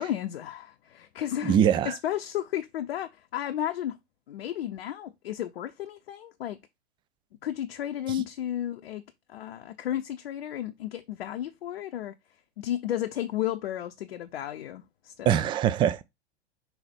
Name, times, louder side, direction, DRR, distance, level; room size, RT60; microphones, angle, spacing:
voice 1, 0.0-4.0 4.3-6.6 7.4-9.0 9.3-12.1 12.6-15.5, left 11 dB, 60° left, 0.7 m, -33 dB
voice 2, 1.4-2.0 15.3-16.0, right 9 dB, 15° right, 0.4 m, -22 dB
5.6 x 4.0 x 4.2 m
figure-of-eight pair, 95°, 33 cm